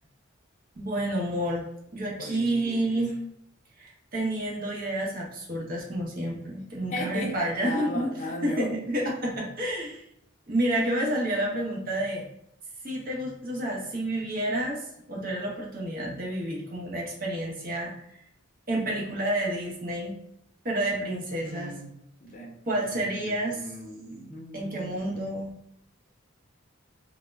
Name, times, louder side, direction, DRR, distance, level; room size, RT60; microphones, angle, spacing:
voice 1, 0.8-1.7 1.9-3.2 3.8-10.0 10.5-12.3 12.8-17.9 18.7-20.2 20.6-21.8 22.7-23.6 24.5-25.5, right 1 dB, 45° right, -2 dB, 0.7 m, -29 dB
voice 2, 2.2-3.0 6.9-7.3 7.6-8.7 21.4-21.9 22.2-25.2, left 1 dB, 40° left, -1 dB, 0.5 m, -37 dB
2.0 x 2.0 x 3.3 m, 0.76 s
head